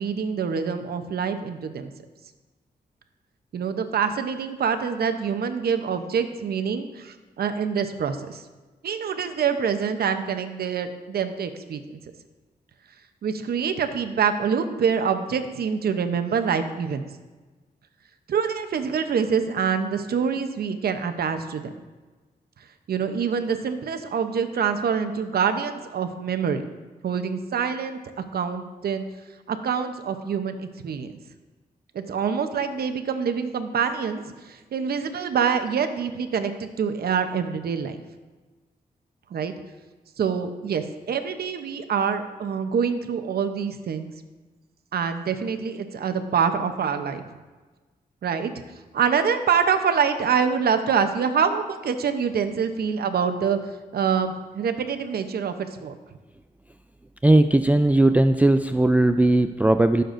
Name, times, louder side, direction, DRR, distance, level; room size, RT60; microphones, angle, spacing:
voice 1, 0.0-1.9 3.5-8.4 8.8-12.0 13.2-17.1 18.3-21.7 22.9-26.7 27.0-29.0 29.5-31.1 31.9-38.0 39.3-39.5 40.2-44.1 44.9-47.2 48.2-48.5 48.9-53.6 53.9-56.0, right 6 dB, 75° right, 8 dB, 0.8 m, -25 dB
voice 2, 57.2-60.0, right 1 dB, 10° right, 9 dB, 0.3 m, -18 dB
14.5 x 6.7 x 2.6 m, 1.3 s
cardioid pair, 70°, 16 cm